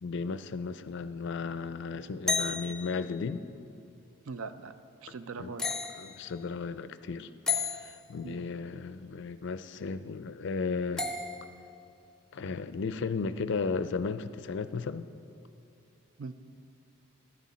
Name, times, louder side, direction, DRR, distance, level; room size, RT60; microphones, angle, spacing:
voice 1, 0.0-3.4 5.4-5.5 6.0-11.1 12.3-15.1, left 4 dB, 55° left, 13 dB, 0.4 m, -35 dB
sound 1, 2.3-3.0 5.6-6.2 7.5-8.0 11.0-11.6, left 4 dB, 5° left, 0.5 m, -32 dB
voice 2, 4.3-4.7 5.0-5.7 8.2-8.4 16.2-16.3, right 4 dB, 70° right, 11 dB, 0.5 m, -40 dB
14.5 x 10.5 x 4.2 m, 2.6 s
head